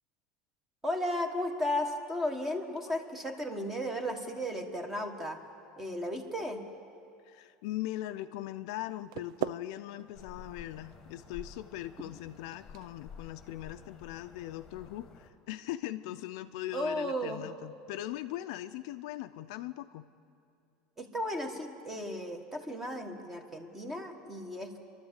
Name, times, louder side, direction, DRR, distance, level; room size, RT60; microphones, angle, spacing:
voice 1, 0.8-5.4 5.8-6.6 16.7-17.4 21.0-24.7, left 1 dB, 10° right, 5 dB, 1.3 m, -34 dB
voice 2, 7.2-20.1, left 14 dB, 60° left, 10 dB, 0.6 m, -40 dB
sound 1, 8.8-14.7, right 13 dB, 75° right, 0.5 m, -44 dB
sound 2, 10.1-15.3, left 6 dB, 20° left, 1.3 m, -51 dB
30.0 x 12.0 x 8.2 m, 2.5 s
cardioid pair, 180°, 3 cm